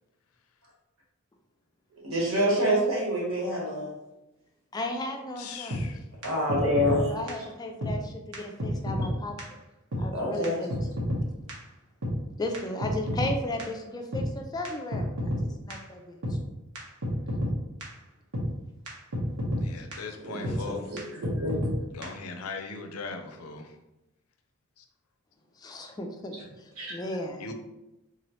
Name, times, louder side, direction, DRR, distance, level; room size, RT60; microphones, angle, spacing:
voice 1, 2.0-3.9 6.2-7.4 10.1-10.7 20.2-21.6 26.8-27.0, equal, 70° right, -2 dB, 1.2 m, -27 dB
voice 2, 4.7-5.8 7.1-9.6 10.0-10.7 12.4-16.4 25.6-27.5, left 1 dB, 20° left, 3 dB, 0.3 m, -35 dB
voice 3, 5.4-6.1 19.6-20.9 21.9-23.8 24.8-24.9 27.4-27.5, left 4 dB, 85° left, 6 dB, 0.5 m, -39 dB
sound 1, 5.7-5.8 6.2-6.3 6.5-7.0 7.3-7.4 7.8-7.9 8.3-8.4 8.6-9.1 9.4-9.5 9.9-10.0 10.4-10.5 10.7-11.2 11.5-11.6 12.0-12.1 12.5-13.3 13.6-13.7 14.1-14.2 14.7-14.8 14.9-15.4 15.7-15.8 16.2-16.3 16.8-16.9 17.0-17.5 17.8-17.9 18.3-18.5 18.9-19.0 19.1-19.6 19.9-20.0 20.4-20.6 21.0-21.1 21.2-21.7 22.0-22.1, left 1 dB, 90° right, 1.1 m, -30 dB
3.7 x 3.0 x 2.9 m, 0.97 s
head